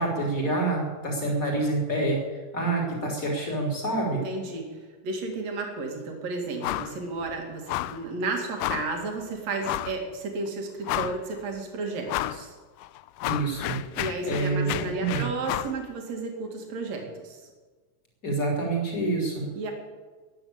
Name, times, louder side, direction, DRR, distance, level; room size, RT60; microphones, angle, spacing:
voice 1, 0.0-2.2 2.5-4.2 13.2-13.8 14.3-15.3 18.2-19.5, right 2 dB, 25° left, 0 dB, 3.6 m, -27 dB
voice 2, 4.1-4.8 5.0-12.5 14.0-17.5 19.5-19.7, right 3 dB, 60° right, 2 dB, 3.3 m, -33 dB
sound 1, 6.6-7.0 7.2-7.4 7.7-8.0 8.6-9.0 9.6-10.0 10.5-10.6 10.8-11.4 12.1-12.4 12.8-15.8, left 15 dB, 90° left, 2.1 m, -31 dB
14.5 x 9.8 x 8.6 m, 1.4 s
omnidirectional pair, 3.6 m